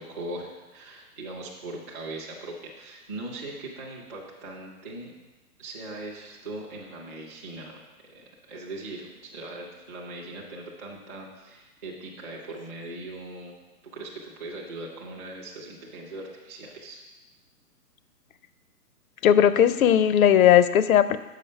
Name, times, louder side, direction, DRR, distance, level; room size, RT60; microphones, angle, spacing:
voice 1, 0.0-5.1 5.6-7.8 8.1-13.5 13.9-17.0, right 2 dB, 10° right, -5 dB, 0.4 m, -40 dB
voice 2, 19.2-21.2, left 9 dB, 60° left, 14 dB, 0.6 m, -18 dB
6.6 x 5.3 x 5.4 m, 1.1 s
hypercardioid pair, 135°, 47 cm